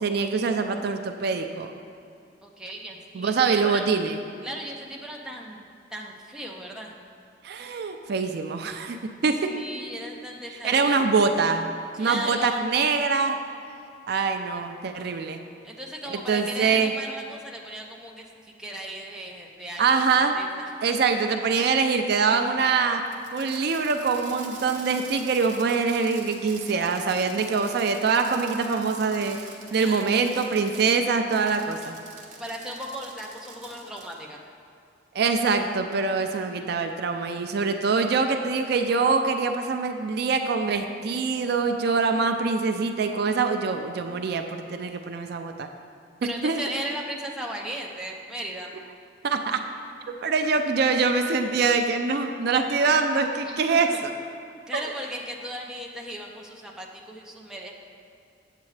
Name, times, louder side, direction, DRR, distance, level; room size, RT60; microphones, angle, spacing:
voice 1, 0.0-1.7 3.1-4.2 7.4-9.5 10.6-11.7 12.0-13.4 14.1-15.4 16.1-16.9 19.8-20.3 20.8-23.0 23.3-29.4 29.7-32.0 35.1-45.7 46.2-46.6 49.2-49.6 50.1-54.1 54.7-54.8, right 4 dB, 60° right, 6 dB, 0.4 m, -24 dB
voice 2, 2.4-3.9 4.4-6.9 9.5-11.0 11.9-12.7 15.6-20.7 21.2-21.4 23.6-23.7 29.7-30.1 31.8-31.9 32.4-34.4 46.2-48.7 53.4-54.0 54.7-57.7, right 1 dB, 5° right, -1 dB, 0.6 m, -37 dB
Fireworks, 23.1-30.9 31.3-34.2, right 4 dB, 45° right, 1.1 m, -45 dB
8.3 x 7.8 x 3.2 m, 2.5 s
head